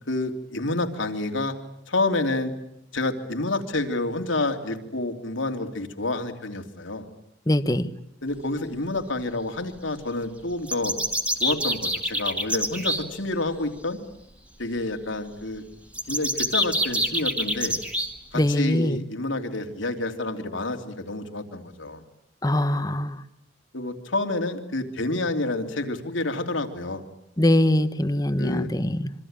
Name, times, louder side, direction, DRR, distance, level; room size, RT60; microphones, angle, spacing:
voice 1, 0.1-1.5 1.9-2.5 2.9-7.1 8.2-11.0 11.4-14.0 14.6-15.6 16.1-17.8 18.3-22.0 23.7-27.0 28.4-28.7, left 2 dB, 80° left, 5 dB, 3.1 m, -28 dB
voice 2, 7.5-7.9 18.3-19.0 22.4-23.2 27.4-29.1, left 1 dB, 20° left, 12 dB, 1.1 m, -22 dB
sound 1, 10.7-13.0 15.9-18.1, equal, 5° right, 2.3 m, -26 dB
26.5 x 25.0 x 9.0 m, 0.79 s
head